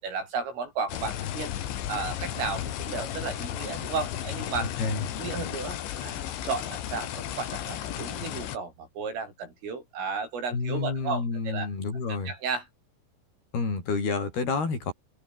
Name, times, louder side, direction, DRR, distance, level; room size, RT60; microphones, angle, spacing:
voice 1, 0.0-1.5 1.9-4.7 5.2-11.7 12.3-12.7, right 5 dB, 80° right, 11.0 m, -34 dB
sound 1, 0.9-8.6, left 11 dB, 70° left, 4.3 m, -34 dB
voice 2, 10.5-12.3 13.5-14.9, left 4 dB, 50° left, 10.0 m, -29 dB
open air
omnidirectional pair, 5.7 m